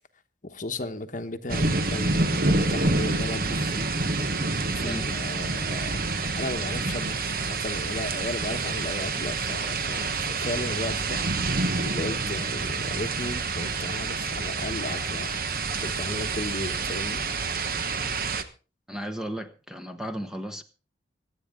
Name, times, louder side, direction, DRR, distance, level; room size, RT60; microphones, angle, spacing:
voice 1, 0.4-3.9 4.7-6.0 6.3-11.2 11.8-15.4 15.8-17.2, left 2 dB, 45° left, 1.0 m, -35 dB
sound 1, 1.5-18.4, right 3 dB, 50° right, 1.1 m, -28 dB
voice 2, 4.8-5.1 18.9-20.6, equal, 5° right, 0.9 m, -34 dB
25.0 x 8.6 x 3.7 m
head